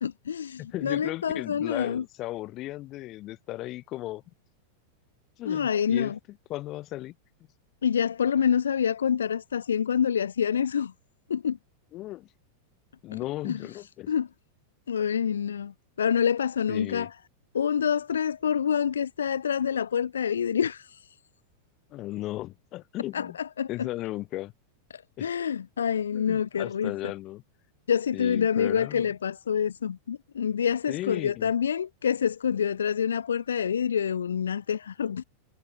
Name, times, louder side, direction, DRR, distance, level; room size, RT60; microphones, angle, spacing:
voice 1, 0.0-2.0 5.4-6.2 7.8-10.9 11.3-11.6 13.4-13.6 14.1-14.3 14.9-17.1 17.5-21.0 23.1-23.9 24.9-26.9 27.9-35.2, left 8 dB, 70° left, 1.4 m, -27 dB
voice 2, 0.6-4.2 5.4-7.1 11.9-12.3 13.0-14.1 16.7-17.1 21.9-23.4 23.7-24.5 25.2-25.3 26.1-27.4 28.1-29.1 30.9-31.5, left 16 dB, 35° left, 3.4 m, -36 dB
figure-of-eight pair, 90°, 0 cm